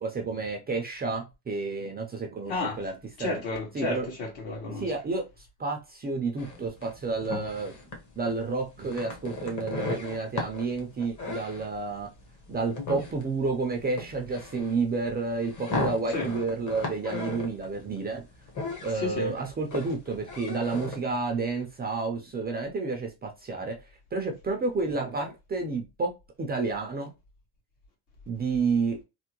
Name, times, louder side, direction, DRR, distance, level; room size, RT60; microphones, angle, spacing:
voice 1, 0.0-2.9 3.2-3.4 3.7-4.1 4.8-7.7 8.2-12.1 12.5-18.2 18.8-23.8 24.1-26.1 26.4-27.1 28.3-29.0, right 4 dB, 20° right, 0.5 m, -30 dB
voice 2, 2.5-2.8 3.2-4.9 16.1-16.3 18.9-19.3, left 3 dB, 65° left, 1.9 m, -31 dB
sound 1, 6.4-21.0, left 3 dB, 35° left, 1.1 m, -37 dB
3.4 x 2.2 x 3.0 m
cardioid pair, 120°, 50 cm